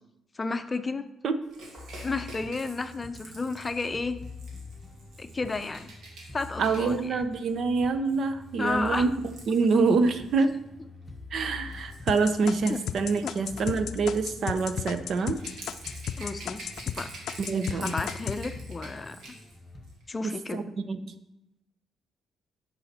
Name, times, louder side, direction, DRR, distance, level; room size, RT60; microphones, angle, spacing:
voice 1, 0.3-1.1 2.0-4.2 5.2-5.9 6.3-7.2 8.6-9.1 12.7-12.8 13.2-13.3 16.2-17.1 17.7-19.4 20.1-20.6, left 3 dB, 25° left, 10 dB, 0.6 m, -32 dB
Rattle / Rattle (instrument), 1.5-10.5 11.5-19.6 19.8-20.0, right 2 dB, 75° right, 2.2 m, -48 dB
sound 1, 1.8-19.9, left 3 dB, ahead, 1.5 m, -46 dB
voice 2, 6.6-9.1 9.5-10.5 11.3-15.4 17.4-17.9 20.5-21.1, right 4 dB, 60° right, 10 dB, 0.7 m, -26 dB
sound 2, 12.1-17.0 17.3-18.4, left 10 dB, 75° left, 0.4 m, -33 dB
10.0 x 5.6 x 4.3 m, 0.89 s
cardioid pair, 90°, 0 cm